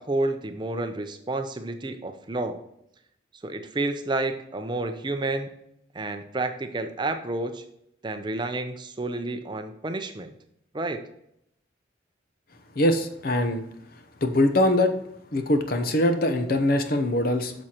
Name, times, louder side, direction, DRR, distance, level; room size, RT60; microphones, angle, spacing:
voice 1, 0.0-2.6 3.4-5.5 5.9-7.6 8.0-10.3 10.7-11.0, right 2 dB, 25° right, 7 dB, 0.5 m, -30 dB
voice 2, 12.8-13.6 14.2-14.9 15.3-17.5, left 1 dB, 50° left, 7 dB, 0.8 m, -22 dB
8.8 x 6.2 x 2.9 m, 0.75 s
head